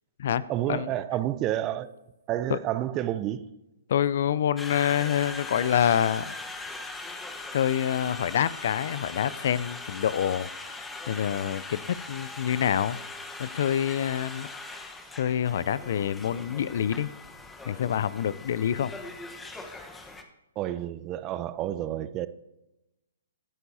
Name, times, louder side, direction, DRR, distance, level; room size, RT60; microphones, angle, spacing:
voice 1, 0.5-1.9 2.3-3.5 20.6-22.3, right 13 dB, 25° right, 0.6 m, -29 dB
voice 2, 3.9-6.3 7.5-10.5 11.1-11.8 12.1-13.0 13.4-14.5 15.2-17.1 17.7-18.9, left 9 dB, 55° left, 0.4 m, -26 dB
Conversation, 4.6-20.2, left 3 dB, 10° left, 1.1 m, -40 dB
24.5 x 9.8 x 2.8 m
figure-of-eight pair, 130°, 0 cm